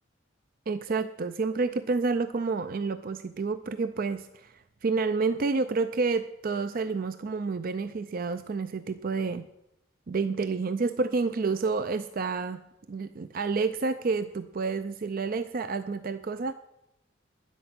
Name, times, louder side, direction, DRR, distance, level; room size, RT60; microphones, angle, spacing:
voice 1, 0.7-9.4 10.1-12.6 12.9-16.5, right 4 dB, 50° right, 10 dB, 0.5 m, -29 dB
12.0 x 10.5 x 5.9 m, 0.85 s
head